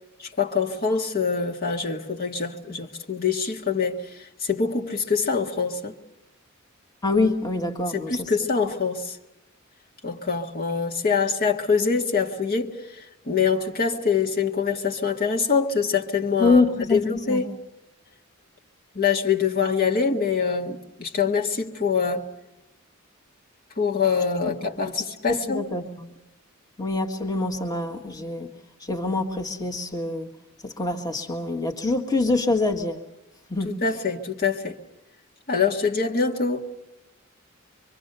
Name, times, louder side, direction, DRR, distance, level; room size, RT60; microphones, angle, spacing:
voice 1, 0.2-5.9 7.9-9.2 10.0-16.6 16.9-17.5 19.0-22.3 23.8-25.7 33.6-34.8 35.5-36.7, left 5 dB, 45° left, 1.8 m, -24 dB
voice 2, 7.0-8.3 16.4-17.4 25.3-26.1 26.8-28.5 28.8-30.3 30.6-33.0 33.5-33.8, left 3 dB, 20° left, 1.8 m, -25 dB
25.0 x 25.0 x 6.9 m
head